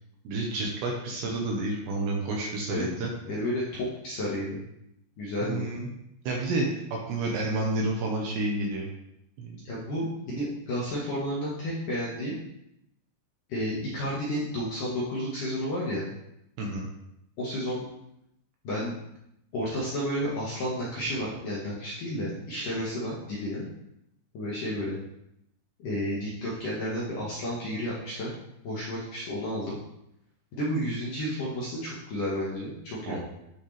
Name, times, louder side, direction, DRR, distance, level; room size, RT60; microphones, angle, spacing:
voice 1, 0.2-3.1 5.4-5.9 6.2-8.9 9.4-9.6 16.6-16.9 33.1-33.2, right 2 dB, 70° right, -1 dB, 2.9 m, -30 dB
voice 2, 3.2-4.6 5.2-5.7 9.6-12.4 13.5-16.1 17.4-17.8 18.6-18.9 19.5-23.7 24.3-25.0 25.8-28.3 28.6-29.8 30.5-33.2, equal, 60° left, -7 dB, 2.3 m, -31 dB
12.0 x 6.2 x 3.4 m, 0.82 s
omnidirectional pair, 5.9 m